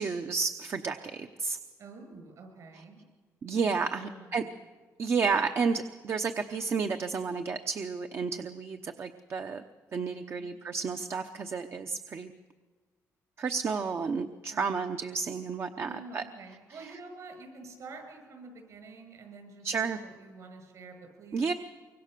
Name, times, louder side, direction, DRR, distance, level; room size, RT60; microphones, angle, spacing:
voice 1, 0.0-1.6 2.7-2.8 3.4-4.4 5.0-9.6 9.9-12.3 13.4-16.2 16.7-17.0 19.6-20.0 21.3-21.5, right 5 dB, 45° right, 7 dB, 0.9 m, -31 dB
voice 2, 1.8-3.0 4.0-4.5 10.3-10.5 14.5-14.7 15.8-21.6, right 3 dB, 60° right, 5 dB, 7.1 m, -48 dB
24.5 x 24.0 x 6.8 m, 1.4 s
cardioid pair, 135°, 6 cm